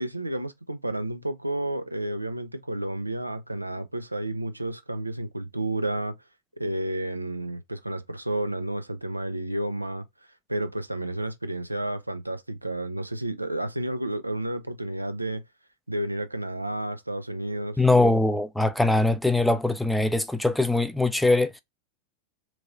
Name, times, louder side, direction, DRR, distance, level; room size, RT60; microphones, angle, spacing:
voice 1, 0.0-6.2 6.6-10.0 10.5-15.4 15.9-17.8, right 1 dB, 85° right, 0.4 m, -31 dB
voice 2, 17.8-21.6, left 2 dB, 5° left, 0.4 m, -22 dB
3.0 x 2.7 x 2.5 m
figure-of-eight pair, 90°, 0 cm